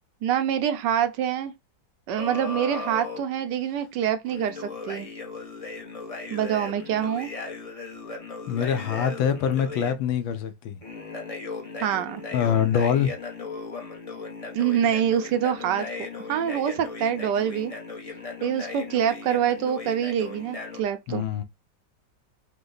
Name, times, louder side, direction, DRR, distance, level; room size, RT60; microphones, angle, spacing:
voice 1, 0.2-1.5 2.1-5.1 6.3-7.3 11.8-12.2 14.5-15.9 16.3-17.7 18.4-21.2, right 9 dB, 75° right, 1.1 m, -25 dB
sound 1, 2.2-3.2 4.2-9.9 10.8-20.8, left 4 dB, 35° left, 0.6 m, -37 dB
voice 2, 8.5-10.8 12.3-13.1 21.1-21.4, left 8 dB, 85° left, 1.5 m, -24 dB
5.0 x 2.2 x 3.9 m
omnidirectional pair, 2.1 m